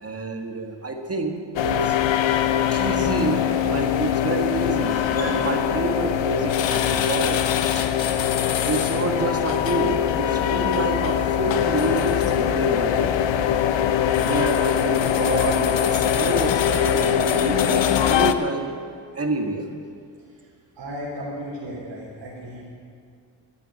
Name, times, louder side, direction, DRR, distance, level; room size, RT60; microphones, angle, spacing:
voice 1, 0.0-2.1 2.7-7.5 7.7-7.9 8.6-13.3 14.2-18.7 19.1-19.7, right 3 dB, 30° right, 3 dB, 1.7 m, -28 dB
sound 1, 1.6-18.3, left 10 dB, 75° left, 0.8 m, -22 dB
Sliding door, 2.9-10.4, left 1 dB, 35° left, 3.2 m, -41 dB
voice 2, 20.8-22.7, equal, 65° right, -6 dB, 3.7 m, -34 dB
11.5 x 10.5 x 8.6 m, 2.2 s
cardioid pair, 80°, 45 cm